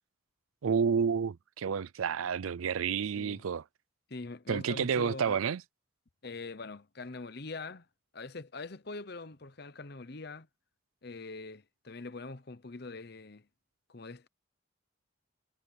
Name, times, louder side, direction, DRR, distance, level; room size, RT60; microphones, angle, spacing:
voice 1, 0.6-3.6 4.5-5.6, right 6 dB, 90° right, 0.5 m, -30 dB
voice 2, 4.1-5.4 6.2-7.9 8.1-10.5 11.0-13.5 13.9-14.3, left 3 dB, 50° left, 0.9 m, -43 dB
head